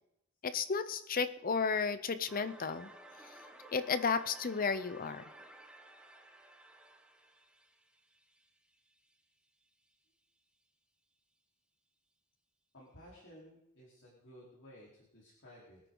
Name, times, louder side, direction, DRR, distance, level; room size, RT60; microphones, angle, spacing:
voice 1, 0.4-2.9 3.7-5.2, left 5 dB, 40° left, 12 dB, 0.7 m, -33 dB
sound 1, 2.3-9.1, right 1 dB, 5° right, 1.3 m, -56 dB
voice 2, 12.7-15.8, equal, 60° left, -6 dB, 4.0 m, -56 dB
24.0 x 9.3 x 3.9 m, 0.84 s
head